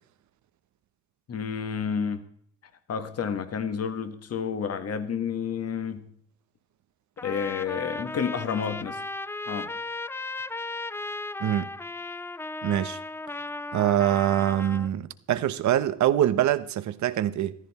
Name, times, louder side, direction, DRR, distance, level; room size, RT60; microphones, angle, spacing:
voice 1, 1.3-2.2 2.9-6.0 7.2-9.0 9.5-9.7, left 7 dB, 55° left, 1.7 m, -30 dB
Trumpet, 7.2-14.9, left 2 dB, 10° left, 0.4 m, -36 dB
voice 2, 12.6-13.0 13.7-17.5, right 11 dB, 70° right, 1.0 m, -24 dB
14.5 x 13.5 x 4.3 m
cardioid pair, 90°, 30 cm